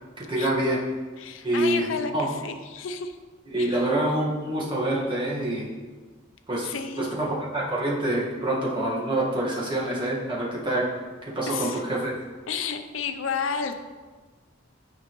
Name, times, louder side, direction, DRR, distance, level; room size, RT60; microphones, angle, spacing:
voice 1, 0.2-0.8 1.4-2.3 3.5-5.7 6.5-6.7 7.0-10.9 11.3-12.1, right 1 dB, 25° right, -5 dB, 1.5 m, -26 dB
voice 2, 1.2-3.2 3.6-3.9 6.6-7.2 11.5-11.8 12.5-13.8, left 6 dB, 80° left, 8 dB, 0.5 m, -32 dB
9.1 x 5.3 x 3.0 m, 1.4 s
head